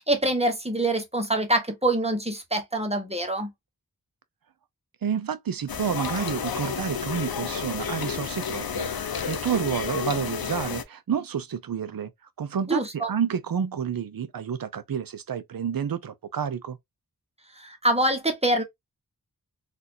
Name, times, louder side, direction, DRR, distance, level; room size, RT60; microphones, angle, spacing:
voice 1, 0.0-3.5 12.7-13.1 17.6-18.6, right 1 dB, 15° right, 1.0 m, -25 dB
voice 2, 5.0-8.9 9.3-12.1 12.4-16.8, right 7 dB, 60° right, 0.6 m, -29 dB
sound 1, 5.7-10.8, left 7 dB, 65° left, 0.6 m, -31 dB
4.0 x 2.5 x 2.7 m
wide cardioid pair, 60°, 38 cm